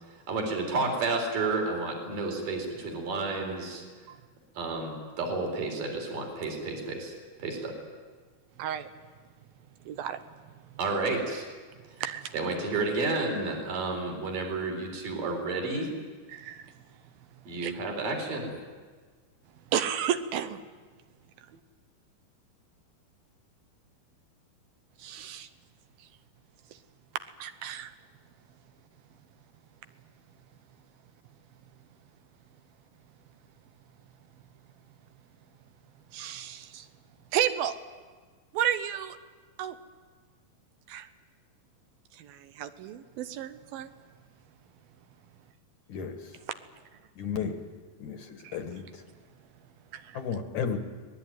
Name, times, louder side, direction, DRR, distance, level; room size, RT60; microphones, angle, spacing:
voice 1, 0.3-3.8 4.6-7.1 7.4-7.7 10.8-11.5 12.3-15.9 17.5-18.6, right 3 dB, 60° right, 2 dB, 5.8 m, -31 dB
voice 2, 9.9-10.2 12.0-12.3 16.3-16.7 17.6-17.7 19.7-20.6 25.0-25.5 27.4-27.9 36.1-36.9 37.3-37.8 38.5-39.2 39.6-39.8 40.9-41.1 42.2-43.9 48.4-48.6 49.9-50.2, right 10 dB, 75° right, 10 dB, 2.6 m, -32 dB
voice 3, 47.2-47.5 48.0-48.2 48.5-48.8 50.1-50.8, left 7 dB, 60° left, 5 dB, 2.5 m, -32 dB
24.5 x 19.0 x 9.4 m, 1.5 s
omnidirectional pair, 4.4 m